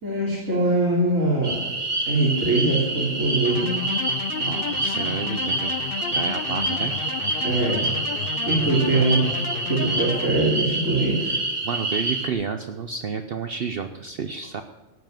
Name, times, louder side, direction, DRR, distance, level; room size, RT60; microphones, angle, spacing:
voice 1, 0.0-1.6 2.1-3.8 7.4-7.9 8.4-9.2 9.7-11.4, right 2 dB, 85° right, -6 dB, 3.5 m, -22 dB
sound 1, 1.4-12.3, right 2 dB, 35° right, 1.6 m, -27 dB
sound 2, 3.4-10.3, left 9 dB, 60° left, 0.7 m, -33 dB
voice 2, 4.4-5.8 6.1-6.9 11.6-14.6, right 5 dB, 55° right, 8 dB, 0.8 m, -30 dB
17.0 x 7.2 x 9.1 m, 1.2 s
omnidirectional pair, 1.3 m